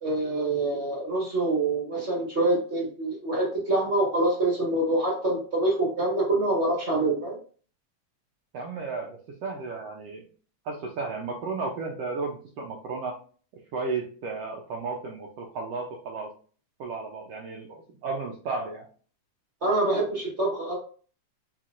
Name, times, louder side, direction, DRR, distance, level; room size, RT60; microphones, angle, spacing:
voice 1, 0.0-7.4 19.6-20.7, right 2 dB, 40° right, -3 dB, 1.0 m, -25 dB
voice 2, 8.5-10.2 10.6-13.2 13.7-16.3 16.8-18.9, right 4 dB, 85° right, 0 dB, 1.3 m, -33 dB
4.5 x 4.0 x 2.5 m, 0.41 s
omnidirectional pair, 3.6 m